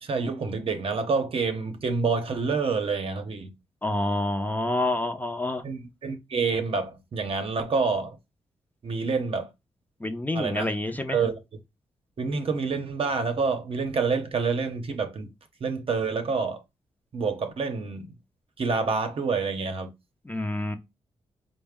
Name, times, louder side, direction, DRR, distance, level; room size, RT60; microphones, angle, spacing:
voice 1, 0.0-3.5 5.6-8.2 8.8-9.5 10.3-10.7 11.1-11.4 12.2-15.3 15.6-16.6 17.1-18.1 18.6-19.9, right 4 dB, 55° right, 0.7 m, -27 dB
voice 2, 3.8-5.6 10.0-11.2 20.3-20.8, left 2 dB, 15° left, 0.5 m, -28 dB
4.5 x 2.1 x 3.4 m
cardioid pair, 95°, 11 cm